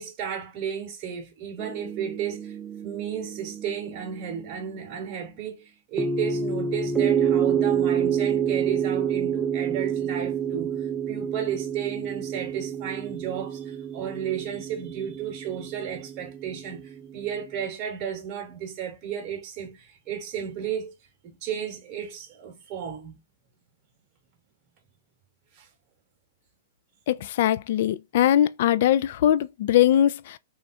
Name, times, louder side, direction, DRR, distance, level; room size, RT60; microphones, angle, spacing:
voice 1, 0.0-2.6 2.8-20.9 21.2-23.2 25.5-25.7, right 8 dB, 35° right, 1.0 m, -33 dB
sound 1, 1.6-4.5 6.0-17.2, right 7 dB, 20° right, 0.4 m, -28 dB
voice 2, 27.1-30.4, left 11 dB, 60° left, 0.3 m, -21 dB
3.2 x 2.3 x 4.2 m
hypercardioid pair, 125°, 0 cm